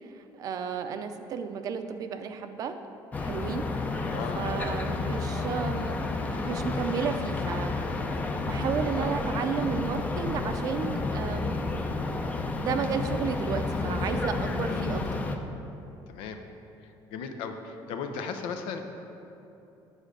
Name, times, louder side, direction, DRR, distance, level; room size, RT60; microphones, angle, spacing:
voice 1, 0.0-2.8 3.2-4.0 4.3-7.7 8.1-11.7 12.6-15.0, right 6 dB, 45° right, 8 dB, 0.5 m, -33 dB
sound 1, 3.1-15.4, left 3 dB, 15° left, 0.5 m, -31 dB
voice 2, 4.0-4.5 14.7-15.1 16.1-16.4 16.8-18.8, left 5 dB, 85° left, 6 dB, 0.8 m, -37 dB
9.8 x 5.0 x 6.6 m, 2.9 s
cardioid pair, 160°, 9 cm